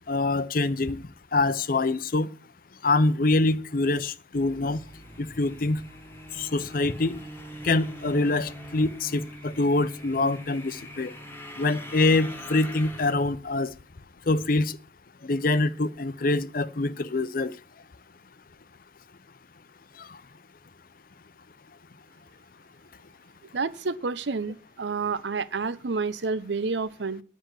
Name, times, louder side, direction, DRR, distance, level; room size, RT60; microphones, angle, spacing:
voice 1, 0.1-1.0 1.3-2.3 2.8-4.8 5.2-5.8 6.3-7.2 7.6-11.1 11.6-13.7 14.3-14.8 15.2-17.5 20.0-20.1, left 2 dB, 50° left, 0.7 m, -25 dB
sound 1, 4.3-13.1, equal, 15° left, 1.4 m, -43 dB
voice 2, 23.5-27.2, right 4 dB, 75° right, 0.7 m, -29 dB
10.5 x 6.2 x 8.0 m
head